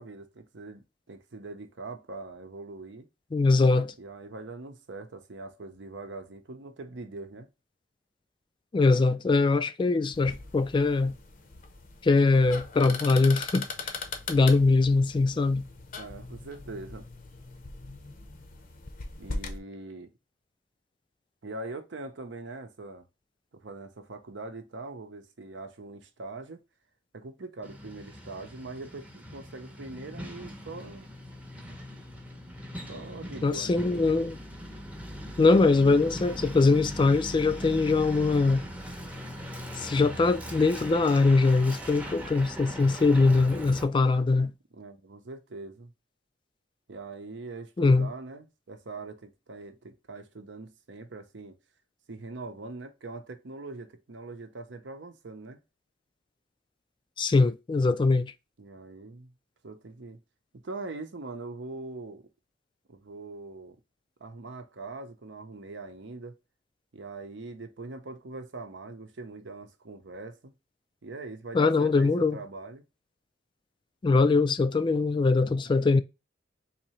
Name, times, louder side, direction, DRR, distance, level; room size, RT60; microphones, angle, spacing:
voice 1, 0.0-3.1 4.0-7.5 16.0-17.1 19.2-20.1 21.4-23.0 23.5-26.6 27.1-31.1 32.9-33.8 44.7-45.9 46.9-51.6 52.1-55.6 58.6-59.3 59.6-60.2 60.5-62.3 62.9-63.8 64.2-66.4 66.9-70.5 71.0-72.8, right 3 dB, 75° right, 0.7 m, -42 dB
voice 2, 3.3-3.9 8.7-11.1 12.0-13.7 14.3-15.6 33.4-34.4 35.4-38.7 39.8-44.5 47.8-48.1 57.2-58.3 71.5-72.4 74.0-76.0, left 3 dB, 25° left, 0.3 m, -22 dB
sound 1, 10.1-19.6, left 4 dB, 45° left, 0.7 m, -40 dB
Truck, 27.6-43.8, equal, 5° right, 0.7 m, -40 dB
3.9 x 2.8 x 3.0 m
head